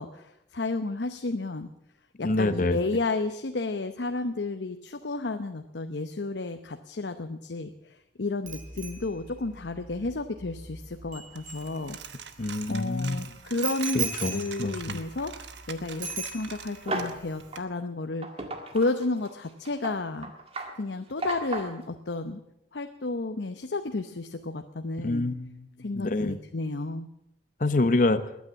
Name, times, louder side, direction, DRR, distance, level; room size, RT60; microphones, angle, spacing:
voice 1, 0.0-1.7 2.2-12.0 12.7-18.3 18.7-20.3 20.8-22.4 22.7-25.3 25.8-27.1, left 3 dB, 85° left, 7 dB, 0.8 m, -32 dB
voice 2, 2.2-2.8 12.4-13.2 13.9-15.0 25.0-25.7 26.0-26.4 27.6-28.3, left 2 dB, 50° left, 11 dB, 0.8 m, -26 dB
Bicycle bell, 8.5-12.3 13.6-15.7 16.0-16.9 17.2-17.4, right 6 dB, 50° right, 4.0 m, -38 dB
Coin (dropping), 11.4-17.6, right 7 dB, 85° right, 1.2 m, -44 dB
sound 1, 16.9-17.2 17.5-17.6 18.2-21.8, right 2 dB, 35° right, 1.9 m, -34 dB
20.5 x 9.5 x 7.4 m, 0.84 s
head